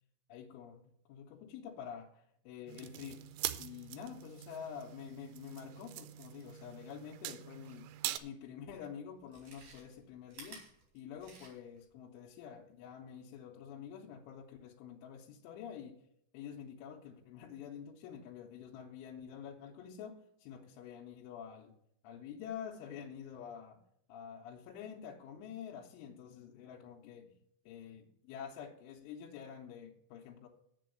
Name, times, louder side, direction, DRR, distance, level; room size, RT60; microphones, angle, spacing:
voice 1, 0.3-3.3 3.6-7.9 8.2-10.6 10.9-16.0 16.3-21.7 22.0-23.8 24.1-27.3 27.7-30.5, left 8 dB, 85° left, -1 dB, 3.2 m, -48 dB
sound 1, 2.7-8.2, right 14 dB, 80° right, 2.8 m, -43 dB
Chewing mastication, 8.4-8.5 9.2-11.8 12.2-12.3, right 3 dB, 45° right, 4.0 m, -54 dB
7.7 x 6.9 x 7.6 m, 0.73 s
omnidirectional pair, 5.4 m